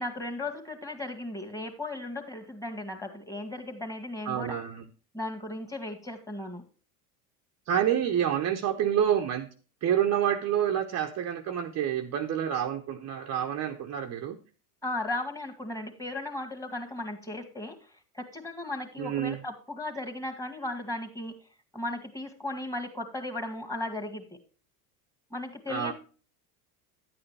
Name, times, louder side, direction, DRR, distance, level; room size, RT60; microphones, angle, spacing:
voice 1, 0.0-4.6 5.1-6.6 14.8-17.8 18.1-21.3 21.7-24.2 25.3-25.9, left 2 dB, 5° left, 4 dB, 1.9 m, -36 dB
voice 2, 4.3-4.8 7.7-9.5 9.8-14.4 19.0-19.4 25.7-25.9, right 9 dB, 35° right, 4 dB, 0.8 m, -28 dB
10.5 x 8.7 x 3.3 m, 0.35 s
hypercardioid pair, 100°, 46 cm